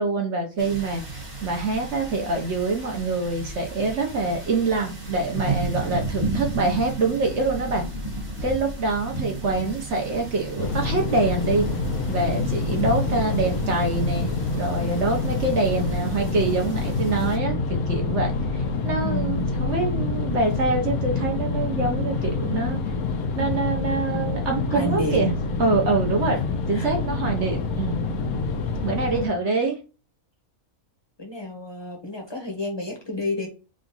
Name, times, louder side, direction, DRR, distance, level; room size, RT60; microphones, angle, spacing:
voice 1, 0.0-7.8 8.4-11.7 12.1-22.8 23.4-25.3 25.6-26.4 26.7-28.0 28.8-29.8, right 3 dB, 55° right, 1 dB, 1.2 m, -25 dB
sound 1, 0.6-17.4, right 2 dB, 25° right, 1.2 m, -34 dB
sound 2, 10.6-29.3, left 3 dB, 80° left, 1.1 m, -26 dB
voice 2, 19.0-19.5 24.7-25.4 26.5-26.9 31.2-33.5, left 1 dB, 20° left, 2 dB, 0.8 m, -30 dB
3.8 x 2.4 x 3.9 m, 0.32 s
omnidirectional pair, 1.5 m